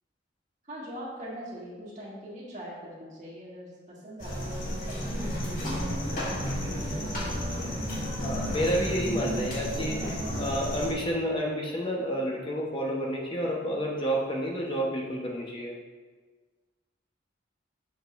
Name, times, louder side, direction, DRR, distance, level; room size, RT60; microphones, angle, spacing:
voice 1, 0.6-4.6 4.8-8.3, equal, 40° right, -6 dB, 1.9 m, -42 dB
sound 1, 4.2-10.9, equal, 50° left, 1.5 m, -32 dB
voice 2, 8.2-10.0 10.4-15.7, equal, 25° left, -1 dB, 1.0 m, -30 dB
6.9 x 6.3 x 2.6 m, 1.4 s
head